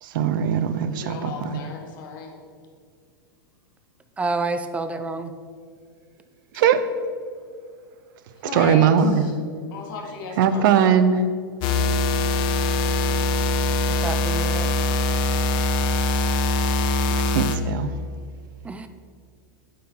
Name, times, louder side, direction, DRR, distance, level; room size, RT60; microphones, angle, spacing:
voice 1, 0.0-1.6 6.5-6.8 8.5-9.2 10.4-11.2 17.1-18.0, right 7 dB, 65° right, 11 dB, 0.5 m, -20 dB
voice 2, 0.9-2.3 6.5-6.6 8.4-9.3 9.7-11.0, left 4 dB, 65° left, 1 dB, 1.4 m, -35 dB
voice 3, 4.2-5.3 14.0-14.7 18.6-18.9, right 3 dB, 10° right, 9 dB, 0.4 m, -28 dB
sound 1, 11.6-17.6, left 2 dB, 45° left, 0.6 m, -22 dB
8.3 x 3.7 x 4.4 m, 2.1 s
hypercardioid pair, 115°, 12 cm